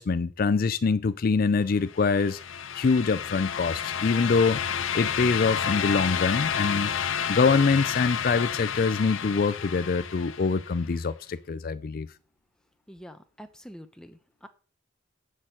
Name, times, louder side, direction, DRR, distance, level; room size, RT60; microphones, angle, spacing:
voice 1, 0.0-2.4 2.7-4.6 4.9-6.9 7.3-12.1, left 4 dB, 50° left, 0.4 m, -24 dB
sound 1, 1.9-10.8, left 8 dB, 85° left, 0.7 m, -30 dB
voice 2, 12.9-14.5, equal, 5° left, 0.9 m, -46 dB
7.3 x 6.4 x 7.7 m
head